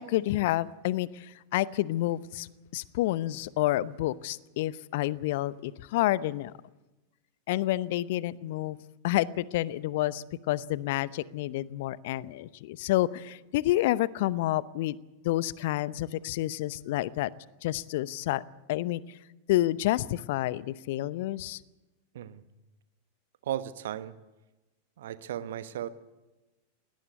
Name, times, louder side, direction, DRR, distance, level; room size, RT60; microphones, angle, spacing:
voice 1, 0.0-2.5 2.7-6.5 7.5-8.8 9.0-15.0 15.2-17.3 17.6-18.4 18.7-19.2 19.5-21.6, left 15 dB, 50° left, 20 dB, 0.7 m, -29 dB
voice 2, 23.4-24.1 25.0-25.9, right 11 dB, 60° right, 13 dB, 1.2 m, -35 dB
21.5 x 18.0 x 8.3 m, 1.1 s
figure-of-eight pair, 90°, 0 cm